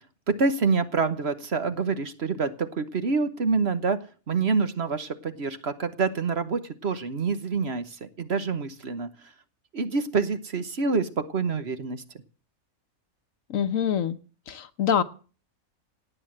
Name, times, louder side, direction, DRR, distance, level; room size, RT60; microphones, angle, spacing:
voice 1, 0.3-4.0 4.3-9.3 9.7-12.0, right 4 dB, 50° right, 11 dB, 1.3 m, -27 dB
voice 2, 13.5-14.2 14.5-15.0, left 8 dB, 65° left, 12 dB, 1.3 m, -25 dB
17.5 x 8.2 x 7.6 m, 0.39 s
omnidirectional pair, 1.5 m